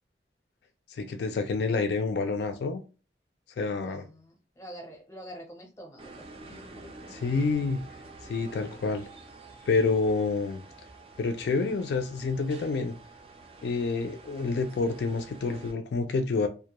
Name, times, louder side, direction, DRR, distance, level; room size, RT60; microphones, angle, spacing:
voice 1, 0.9-2.8 3.6-4.0 7.1-7.8 8.2-9.0 9.7-10.6 11.2-12.9 13.6-16.5, left 4 dB, 70° left, 0.3 m, -28 dB
voice 2, 3.7-7.2 10.2-10.5, equal, 15° left, 0.7 m, -47 dB
sound 1, 6.0-15.7, right 3 dB, 30° right, 0.4 m, -48 dB
2.1 x 2.1 x 2.8 m
head